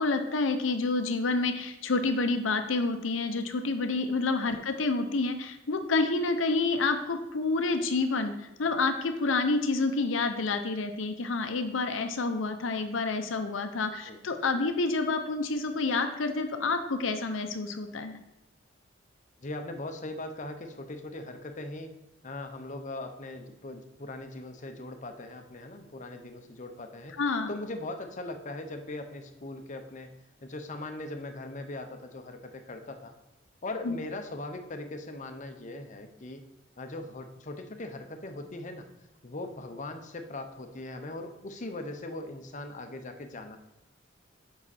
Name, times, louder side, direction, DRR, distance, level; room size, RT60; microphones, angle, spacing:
voice 1, 0.0-18.2 27.2-27.5 33.8-34.0, left 3 dB, 85° left, 7 dB, 0.7 m, -28 dB
voice 2, 19.4-21.9 22.2-27.2 27.5-30.1 30.4-33.1 33.6-36.4 36.8-38.9 39.2-43.6, left 2 dB, 40° left, 6 dB, 0.8 m, -40 dB
7.5 x 5.7 x 4.2 m, 1.0 s
head